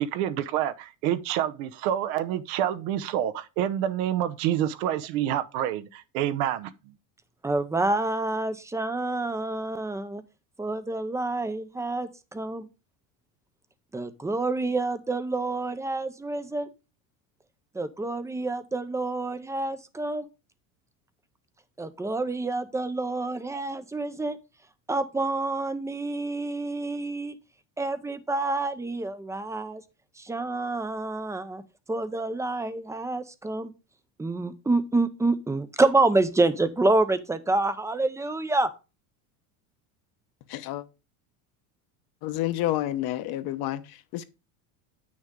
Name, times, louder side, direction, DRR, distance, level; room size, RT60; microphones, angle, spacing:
voice 1, 0.0-6.7, right 11 dB, 75° right, 0.9 m, -27 dB
voice 2, 7.4-10.2 10.6-12.7 13.9-16.7 17.7-20.3 21.8-24.4 24.9-27.4 27.8-29.8 30.2-31.6 31.9-33.7 34.2-38.7, right 2 dB, 5° right, 0.5 m, -27 dB
voice 3, 40.5-40.8 42.2-44.2, left 14 dB, 55° left, 1.0 m, -29 dB
8.7 x 6.4 x 3.6 m
supercardioid pair, 135°, 44 cm